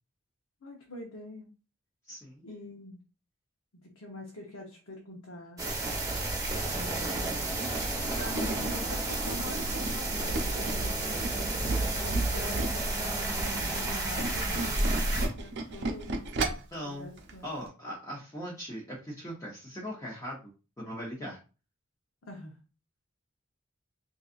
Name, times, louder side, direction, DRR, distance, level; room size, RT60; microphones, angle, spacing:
voice 1, 0.6-1.5 2.4-3.0 3.7-5.6 6.7-7.5 8.2-11.0 11.9-16.2 16.8-17.5 22.2-22.5, left 1 dB, 85° left, -2 dB, 0.9 m, -44 dB
voice 2, 2.1-2.5 16.7-17.1 17.4-21.4, equal, 15° left, -4 dB, 0.8 m, -40 dB
sound 1, 5.6-15.3, right 2 dB, 15° right, 1.0 m, -31 dB
Tools, 7.9-12.9 13.2-16.8 17.2-17.4 17.7-17.8, right 2 dB, 55° right, 0.6 m, -36 dB
3.9 x 2.7 x 2.5 m, 0.34 s
head